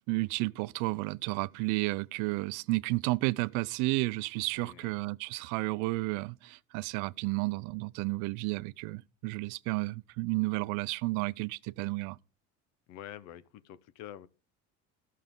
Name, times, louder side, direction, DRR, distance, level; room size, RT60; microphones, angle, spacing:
voice 1, 0.1-12.2, right 23 dB, 85° right, 0.5 m, -32 dB
voice 2, 4.6-4.9 12.9-14.3, left 11 dB, 65° left, 0.8 m, -47 dB
14.0 x 6.6 x 3.7 m
cardioid pair, 145°, 30 cm